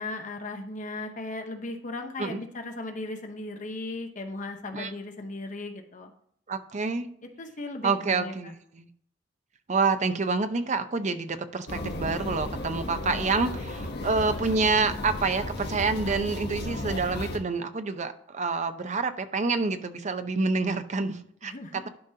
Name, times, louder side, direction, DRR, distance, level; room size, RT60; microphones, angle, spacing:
voice 1, 0.0-6.1 7.4-8.3 21.4-21.9, left 2 dB, 40° left, 5 dB, 0.9 m, -37 dB
voice 2, 6.5-7.1 7.8-8.9 9.7-21.9, right 4 dB, 40° right, 10 dB, 0.7 m, -28 dB
sound 1, 11.7-17.4, left 1 dB, 60° left, 1.2 m, -34 dB
11.5 x 5.3 x 2.8 m, 0.67 s
head